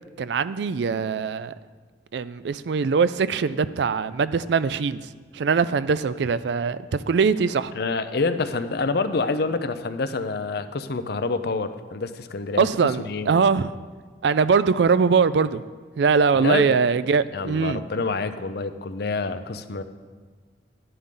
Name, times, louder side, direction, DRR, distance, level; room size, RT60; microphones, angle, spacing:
voice 1, 0.2-1.5 2.1-5.0 5.4-7.7 12.6-13.7 14.2-15.6 16.0-17.8, right 5 dB, 65° right, 15 dB, 0.4 m, -22 dB
voice 2, 7.7-12.7 13.0-13.3 16.3-16.8 17.3-19.8, left 3 dB, 60° left, 10 dB, 0.6 m, -27 dB
11.0 x 11.0 x 3.8 m, 1.5 s
head